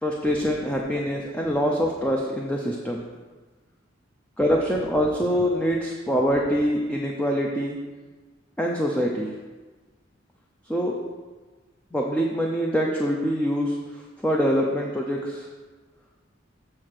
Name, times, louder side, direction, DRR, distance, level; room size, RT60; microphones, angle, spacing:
voice 1, 0.0-3.0 4.4-7.8 8.6-9.3 10.7-10.9 11.9-13.8 14.2-15.5, equal, 5° left, -1 dB, 0.6 m, -24 dB
7.7 x 4.3 x 6.5 m, 1.3 s
head